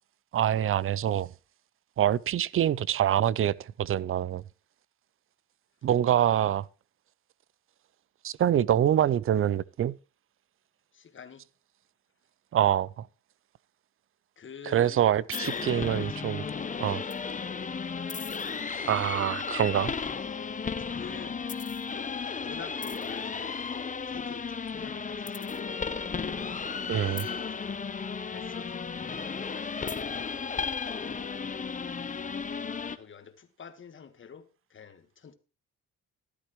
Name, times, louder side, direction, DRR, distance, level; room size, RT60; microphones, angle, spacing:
voice 1, 0.3-1.3 2.0-4.4 5.8-6.7 8.2-10.0 12.5-13.1 14.7-16.4 16.8-17.0 18.7-19.9 26.9-27.2, right 10 dB, 45° right, 0.4 m, -25 dB
voice 2, 10.9-11.5 14.3-15.1 15.4-17.0 20.4-21.6 22.4-23.7 24.0-25.6 26.9-27.8 28.3-28.9 29.7-30.2 32.2-32.4 32.9-35.3, left 6 dB, 40° left, 1.6 m, -47 dB
sound 1, 15.3-33.0, left 5 dB, 25° left, 0.8 m, -34 dB
13.5 x 11.5 x 3.1 m
cardioid pair, 90°, 30 cm